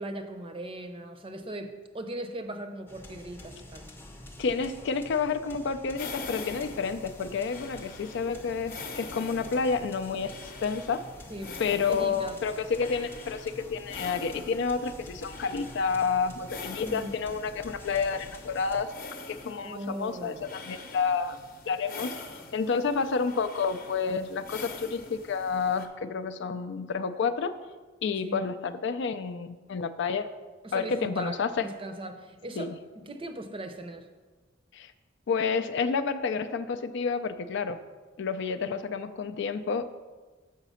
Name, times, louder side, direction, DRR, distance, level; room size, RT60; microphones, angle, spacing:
voice 1, 0.0-3.9 11.3-11.6 11.9-12.4 16.9-17.1 19.6-20.4 28.2-28.5 30.6-34.1, right 1 dB, 30° right, 8 dB, 0.6 m, -39 dB
sound 1, 2.9-18.8, left 1 dB, 10° left, 0.6 m, -48 dB
voice 2, 4.4-11.0 11.6-18.9 19.3-21.4 21.7-22.2 22.5-27.6 28.0-30.3 30.7-31.7 32.6-32.7 34.7-34.9 35.3-37.8 38.2-39.9, left 5 dB, 65° left, 11 dB, 0.4 m, -30 dB
sound 2, 6.0-25.9, left 3 dB, 45° left, 0.8 m, -45 dB
7.2 x 4.9 x 5.6 m, 1.3 s
head